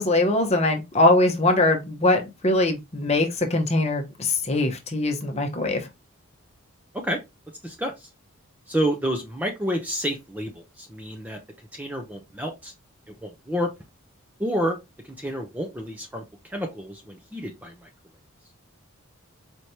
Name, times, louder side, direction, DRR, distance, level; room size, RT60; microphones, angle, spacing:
voice 1, 0.0-5.9, left 2 dB, 30° left, 0.8 m, -22 dB
voice 2, 8.7-10.5 10.8-11.4 11.7-12.7 13.2-13.7 14.4-14.8 15.2-16.2 16.5-17.9, equal, 5° right, 0.5 m, -29 dB
4.4 x 3.2 x 2.7 m
head